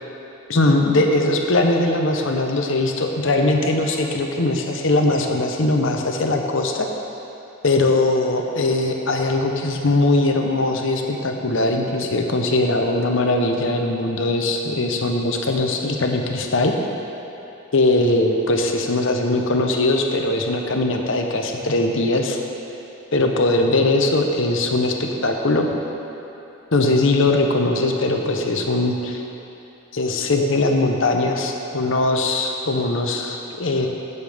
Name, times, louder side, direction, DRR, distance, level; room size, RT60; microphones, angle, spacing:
voice 1, 0.5-6.9 7.6-16.7 17.7-22.4 23.1-25.7 26.7-29.2 29.9-33.9, left 2 dB, 65° left, 2 dB, 0.9 m, -20 dB
16.0 x 6.9 x 3.5 m, 3.0 s
head